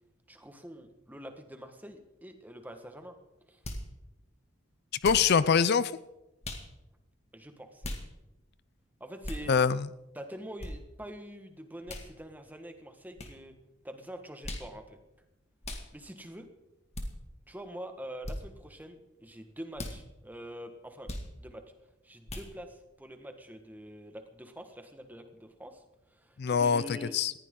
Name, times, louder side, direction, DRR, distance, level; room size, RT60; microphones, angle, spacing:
voice 1, 0.3-3.2 3.5-3.6 7.3-7.8 9.0-9.5 10.1-13.6 13.8-15.0 15.9-16.5 17.5-21.1 21.4-21.6 22.0-25.8 26.1-27.2, equal, 10° right, 6 dB, 1.5 m, -45 dB
sound 1, 3.6-3.9 5.0-5.3 6.4-6.7 7.8-8.0 9.2-9.5 10.6-10.7 11.9-12.1 13.2-13.3 14.4-14.7 15.6-15.9 16.9-17.1 18.2-18.4 19.7-20.0 21.1-21.3 22.3-22.5, left 1 dB, 35° left, 2.0 m, -38 dB
voice 2, 5.0-5.9 9.5-9.9 26.4-27.3, left 6 dB, 55° left, 16 dB, 0.5 m, -24 dB
19.5 x 15.0 x 3.8 m, 0.95 s
head